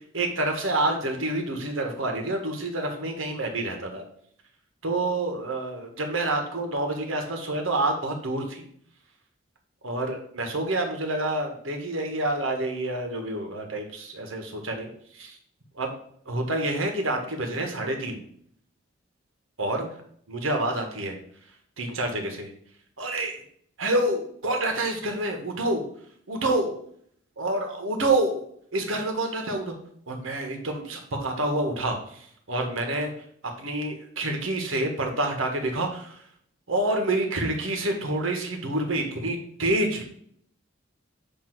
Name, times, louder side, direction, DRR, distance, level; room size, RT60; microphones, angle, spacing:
voice 1, 0.1-4.0 4.8-8.6 9.8-14.9 15.1-15.4 15.7-15.9 16.2-18.2 19.6-19.9 20.3-21.2 21.8-22.5 23.0-23.4 23.8-25.8 26.3-26.7 27.4-28.4 28.7-29.7 30.1-33.1 33.6-36.2 36.7-40.0, right 2 dB, 85° right, 3 dB, 1.6 m, -28 dB
8.6 x 2.9 x 6.0 m, 0.64 s
head